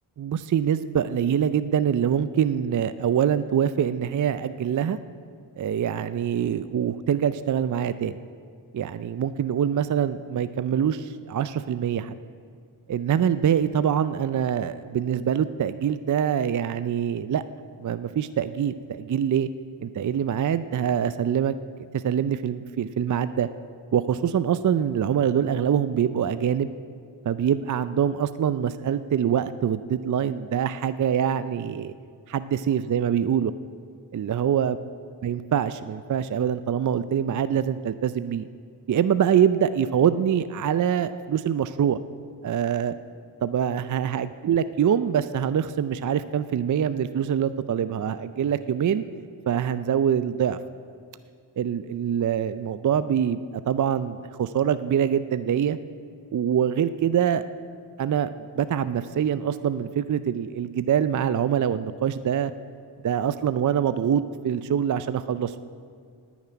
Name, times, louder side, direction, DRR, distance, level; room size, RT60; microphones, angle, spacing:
voice 1, 0.2-5.0 5.6-8.2 8.7-12.1 12.9-17.4 17.8-19.5 19.8-21.5 21.9-23.5 23.9-26.7 27.3-31.9 32.3-33.5 34.1-34.8 35.2-38.4 38.9-42.0 42.4-42.9 43.4-49.0 49.5-50.6 51.6-55.8 56.3-57.4 58.0-62.5 63.0-65.6, right 8 dB, 40° right, 13 dB, 0.5 m, -24 dB
9.8 x 7.3 x 9.3 m, 2.2 s
cardioid pair, 50°, 50 cm